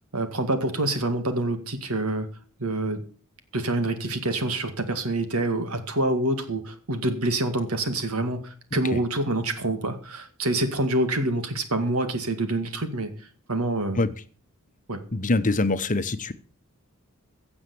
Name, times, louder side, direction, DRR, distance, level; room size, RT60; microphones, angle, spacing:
voice 1, 0.1-2.3 2.6-3.0 3.5-13.1 13.5-14.0 14.9-15.0, right 2 dB, 85° right, 8 dB, 2.1 m, -26 dB
voice 2, 15.1-16.3, left 2 dB, 35° left, 11 dB, 0.9 m, -24 dB
16.0 x 7.1 x 7.0 m, 0.42 s
head